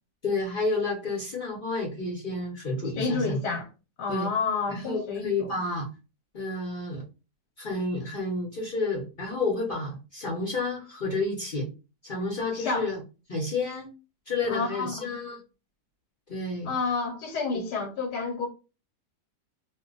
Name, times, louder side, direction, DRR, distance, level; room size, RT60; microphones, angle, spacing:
voice 1, 0.2-3.4 4.1-4.3 4.7-5.9 6.3-7.0 7.6-11.7 12.0-13.0 13.3-13.9 14.3-15.4 16.3-16.7 17.5-17.6, left 3 dB, 45° left, 0.7 m, -30 dB
voice 2, 3.0-3.7 4.0-5.5 12.5-12.9 14.5-15.1 16.6-18.5, left 4 dB, 80° left, 1.2 m, -29 dB
2.7 x 2.1 x 3.7 m
omnidirectional pair, 1.8 m